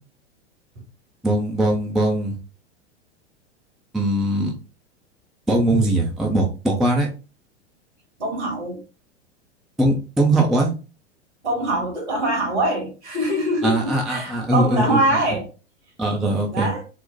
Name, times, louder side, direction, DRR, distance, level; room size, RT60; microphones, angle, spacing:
voice 1, 1.2-2.4 3.9-4.5 5.5-7.1 9.8-10.7 13.6-15.0 16.0-16.7, right 1 dB, ahead, 0.3 m, -20 dB
voice 2, 8.2-8.8 11.4-15.5 16.5-16.8, right 1 dB, 70° right, 2.1 m, -23 dB
3.9 x 2.1 x 3.9 m
figure-of-eight pair, 95°, 35 cm